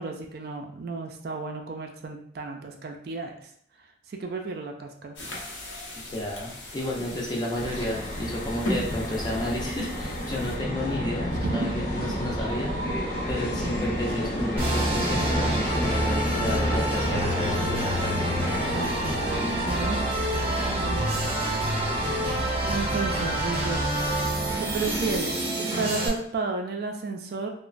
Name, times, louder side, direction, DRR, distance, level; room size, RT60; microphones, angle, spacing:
voice 1, 0.0-3.3 4.1-5.2 11.4-12.2 13.6-13.9 18.5-20.0 20.8-21.4 22.7-23.9 24.3-27.5, right 4 dB, 55° right, 3 dB, 0.3 m, -33 dB
sound 1, 5.2-10.6, equal, 85° left, 0.7 m, -37 dB
voice 2, 6.0-12.7 13.3-18.2, left 1 dB, 20° left, -2 dB, 0.5 m, -32 dB
sound 2, 7.5-25.2, equal, 55° left, 0.7 m, -31 dB
sound 3, 14.6-26.1, right 1 dB, 30° right, 0.7 m, -27 dB
2.9 x 2.0 x 2.4 m, 0.67 s
head